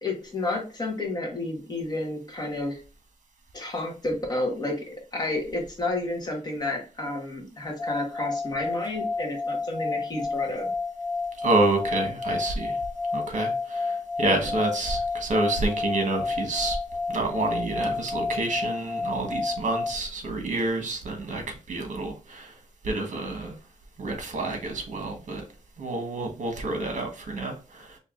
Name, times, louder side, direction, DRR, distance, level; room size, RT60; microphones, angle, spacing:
voice 1, 0.0-2.8 3.5-10.7 14.2-14.5, left 2 dB, 30° left, 1.1 m, -31 dB
sound 1, 7.8-19.9, left 4 dB, 70° left, 0.6 m, -30 dB
voice 2, 11.4-12.8 13.1-16.8 17.1-22.6 22.8-23.6 24.0-25.4 25.8-28.0, right 2 dB, 65° right, 1.1 m, -28 dB
4.7 x 2.8 x 2.4 m
wide cardioid pair, 175°, 13 cm